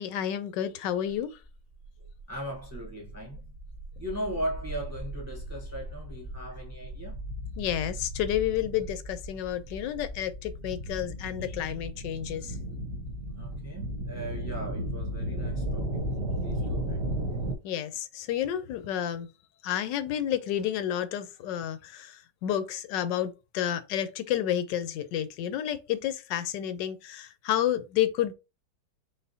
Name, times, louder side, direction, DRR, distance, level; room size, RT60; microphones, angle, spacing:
voice 1, 0.0-1.3 7.6-12.5 17.6-19.3 19.6-28.3, left 11 dB, 85° left, 1.2 m, -30 dB
sound 1, 1.5-17.6, right 1 dB, 45° right, 0.9 m, -35 dB
voice 2, 2.0-3.5 4.0-7.2 13.4-16.0 16.4-17.0, equal, 15° right, 0.7 m, -38 dB
4.1 x 3.5 x 2.7 m
omnidirectional pair, 1.9 m